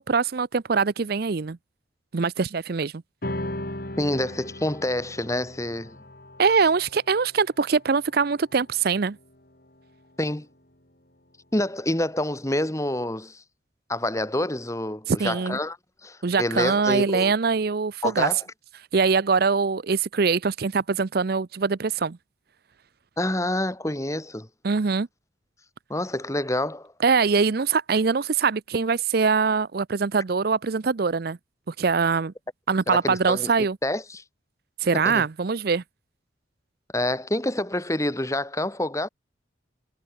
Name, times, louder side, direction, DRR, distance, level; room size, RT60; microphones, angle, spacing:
voice 1, 0.0-1.6 2.1-2.9 6.4-9.2 15.1-15.6 16.2-18.3 18.9-22.2 24.6-25.1 27.0-31.4 31.7-32.3 32.7-33.8 34.8-35.8, right 5 dB, 50° right, 0.5 m, -23 dB
sound 1, 3.2-10.0, left 1 dB, 50° left, 4.6 m, -38 dB
voice 2, 4.0-6.0 10.2-10.5 11.5-13.4 13.9-15.8 16.0-17.3 18.0-18.4 23.2-24.5 25.9-26.9 32.9-33.5 33.8-34.2 34.9-35.2 36.9-39.1, left 1 dB, 15° left, 1.7 m, -27 dB
head